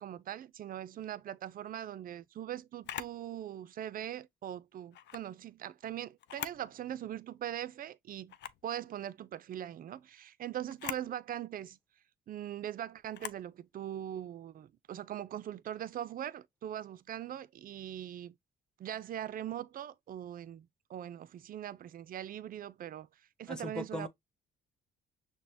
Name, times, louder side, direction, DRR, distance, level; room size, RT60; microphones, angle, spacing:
voice 1, 0.0-8.4 8.6-11.8 12.3-18.3 18.8-23.1 23.4-24.1, right 11 dB, 45° right, 0.4 m, -41 dB
Camera, 2.8-3.2 4.9-5.3 6.2-6.7 7.1-7.2 8.3-8.7 10.7-11.1 13.1-13.5, left 11 dB, 60° left, 0.4 m, -42 dB
voice 2, 23.5-24.1, left 1 dB, 5° left, 0.6 m, -39 dB
6.1 x 2.0 x 2.6 m
cardioid pair, 90°, 20 cm